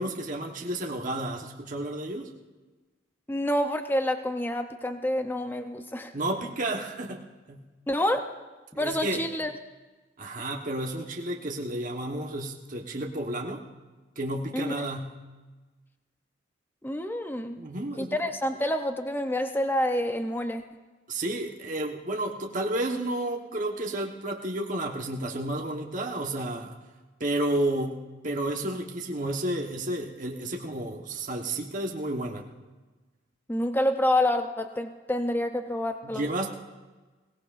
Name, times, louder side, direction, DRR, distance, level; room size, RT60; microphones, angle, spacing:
voice 1, 0.0-2.3 6.1-7.7 8.7-9.2 10.2-13.6 14.2-15.2 17.6-18.2 21.1-26.8 27.2-32.5 36.0-36.5, right 1 dB, 45° right, 0 dB, 1.2 m, -31 dB
voice 2, 3.3-6.1 7.9-8.4 8.8-9.5 14.5-14.7 16.8-17.6 18.0-20.6 33.5-36.2, left 1 dB, 10° left, 6 dB, 0.6 m, -28 dB
22.5 x 18.0 x 2.5 m, 1.3 s
head